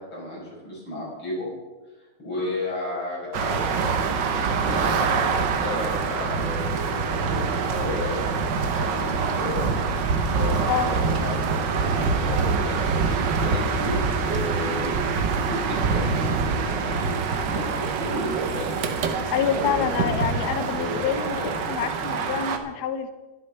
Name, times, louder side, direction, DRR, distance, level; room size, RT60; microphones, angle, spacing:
voice 1, 0.1-1.5 2.2-8.2 8.7-9.8 10.3-14.9 15.3-18.8 19.3-21.0 21.3-21.5, left 1 dB, 80° left, -6 dB, 6.6 m, -33 dB
sound 1, 3.3-22.6, right 5 dB, 65° right, 1.7 m, -25 dB
voice 2, 19.3-21.4 21.7-23.1, left 8 dB, 60° left, 10 dB, 1.2 m, -27 dB
11.5 x 11.5 x 5.7 m, 1.2 s
omnidirectional pair, 2.2 m